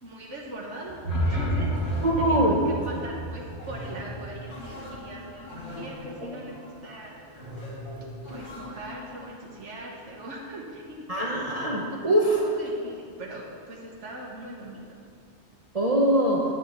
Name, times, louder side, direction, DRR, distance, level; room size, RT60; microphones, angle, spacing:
voice 1, 0.0-7.1 8.3-11.3 11.9-15.0, right 1 dB, 85° right, -3 dB, 1.6 m, -41 dB
sound 1, 0.9-4.9, right 1 dB, 75° left, 2.5 m, -30 dB
sound 2, 1.7-9.2, left 1 dB, 45° left, 3.4 m, -41 dB
voice 2, 2.0-2.6 6.2-6.4 11.1-12.4 15.7-16.4, right 1 dB, 35° right, -3 dB, 1.0 m, -23 dB
10.5 x 5.0 x 8.2 m, 2.3 s
omnidirectional pair, 1.2 m